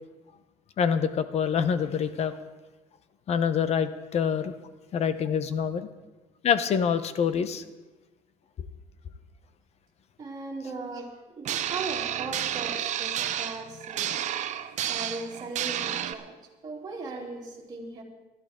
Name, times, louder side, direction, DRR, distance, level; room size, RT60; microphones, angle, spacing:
voice 1, 0.8-2.3 3.3-4.5 4.9-5.9 6.4-7.6, left 7 dB, 45° left, 12 dB, 0.9 m, -26 dB
voice 2, 10.2-14.3 14.6-16.4 16.6-18.0, right 3 dB, 30° right, -3 dB, 3.2 m, -38 dB
sound 1, 11.4-16.1, right 11 dB, 55° right, 0.8 m, -31 dB
20.0 x 13.0 x 3.7 m, 1.2 s
cardioid pair, 130°, 14 cm